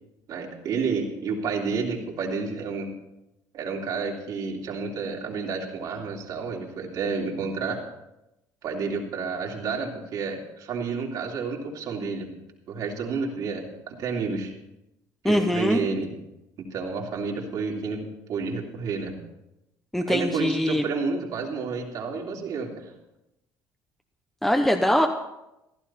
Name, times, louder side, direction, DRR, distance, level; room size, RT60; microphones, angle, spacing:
voice 1, 0.3-2.9 3.5-7.8 8.6-12.3 12.7-14.5 15.2-16.1 16.6-18.0 18.3-19.1 20.1-22.9, right 4 dB, 55° right, -1 dB, 3.0 m, -30 dB
voice 2, 15.2-15.8 19.9-20.8 24.4-25.1, equal, 5° left, 4 dB, 0.8 m, -22 dB
15.0 x 12.0 x 4.3 m, 0.90 s
cardioid pair, 120°, 8 cm